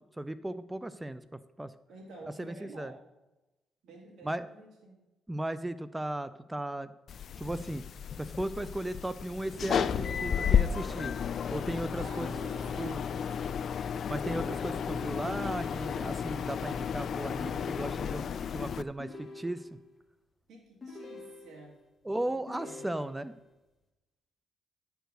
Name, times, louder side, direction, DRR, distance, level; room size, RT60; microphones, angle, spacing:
voice 1, 0.2-1.7 2.4-2.9 4.2-4.5 5.3-6.9 7.4-7.8 8.2-11.2 11.5-12.3 12.8-13.0 14.1-18.2 18.5-19.8 22.0-23.3, right 1 dB, 10° right, 14 dB, 0.4 m, -36 dB
voice 2, 1.9-3.0 3.8-5.1 12.0-13.6 20.5-21.8 22.2-22.8, right 2 dB, 70° right, -3 dB, 2.4 m, -50 dB
sound 1, 7.1-18.8, left 7 dB, 55° left, 0.3 m, -32 dB
sound 2, 9.8-10.8 12.2-13.3 14.3-15.4 17.4-18.4 19.0-20.0 20.8-21.8 22.5-23.5, left 3 dB, 30° left, 1.5 m, -47 dB
10.0 x 4.7 x 6.6 m, 1.0 s
cardioid pair, 90°, 0 cm